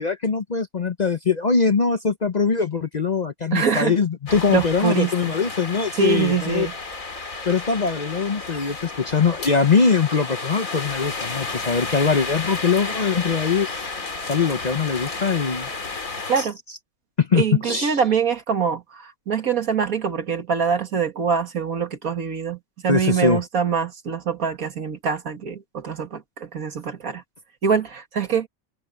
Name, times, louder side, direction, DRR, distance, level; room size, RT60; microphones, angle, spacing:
voice 1, 0.0-6.7 7.4-13.7 14.2-15.7 16.4-16.5 17.2-18.0 22.9-23.4, left 5 dB, 40° left, 0.7 m, -22 dB
voice 2, 3.5-3.9 4.5-5.3 6.0-6.7 16.3-16.6 17.3-22.6 22.8-27.2 27.6-28.5, right 6 dB, 85° right, 2.4 m, -24 dB
sound 1, 4.3-16.5, left 3 dB, 70° left, 3.2 m, -32 dB
omnidirectional pair, 1.5 m